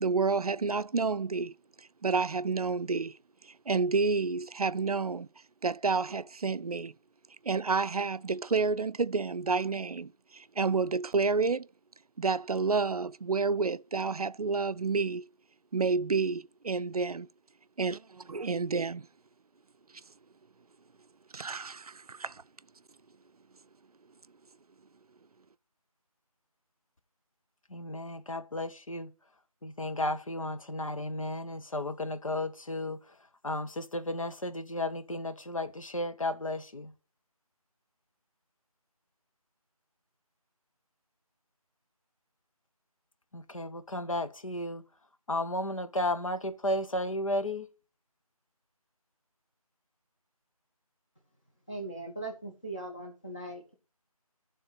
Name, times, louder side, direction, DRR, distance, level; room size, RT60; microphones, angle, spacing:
voice 1, 0.0-3.2 3.4-5.3 5.6-6.9 7.4-11.7 12.2-15.3 15.7-17.3 17.8-18.0 18.3-19.1 21.3-22.4, right 4 dB, 75° right, 0.5 m, -29 dB
voice 2, 27.7-29.1 29.6-33.2 33.4-36.9 43.3-44.8 45.3-47.7, left 1 dB, 60° left, 1.0 m, -33 dB
voice 3, 51.7-53.7, right 2 dB, 15° left, 0.7 m, -39 dB
9.2 x 3.8 x 7.1 m
figure-of-eight pair, 165°, 19 cm